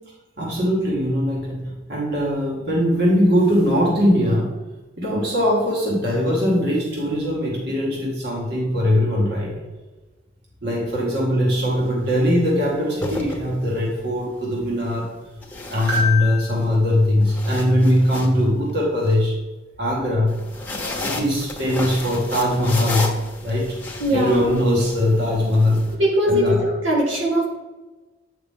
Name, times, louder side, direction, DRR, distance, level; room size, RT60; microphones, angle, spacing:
voice 1, 0.4-4.6 5.0-9.5 10.6-15.1 15.7-19.3 19.8-20.4 21.0-23.1 23.4-23.7 24.1-25.9 26.3-26.6, left 1 dB, 60° right, -4 dB, 2.2 m, -20 dB
sound 1, 11.6-11.9 12.8-13.9 15.4-16.6 17.0-19.1 20.3-25.9, left 2 dB, 10° left, 1.0 m, -32 dB
voice 2, 24.0-24.6 26.0-27.4, equal, 85° right, -3 dB, 2.4 m, -20 dB
8.9 x 5.8 x 3.8 m, 1.2 s
head